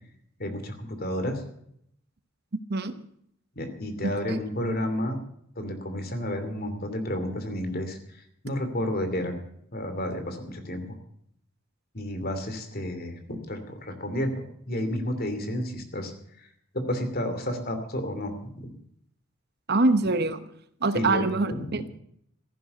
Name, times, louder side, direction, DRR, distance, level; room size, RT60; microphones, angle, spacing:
voice 1, 0.4-1.4 3.6-5.2 5.6-9.4 9.7-10.9 11.9-14.3 14.7-16.1 16.4-16.5 16.7-18.7 20.9-21.2 21.5-21.8, left 1 dB, 45° left, 7 dB, 2.7 m, -31 dB
voice 2, 4.0-4.4 19.7-20.4 20.8-21.9, right 3 dB, 50° right, 11 dB, 1.0 m, -24 dB
15.0 x 11.0 x 6.8 m, 0.70 s
head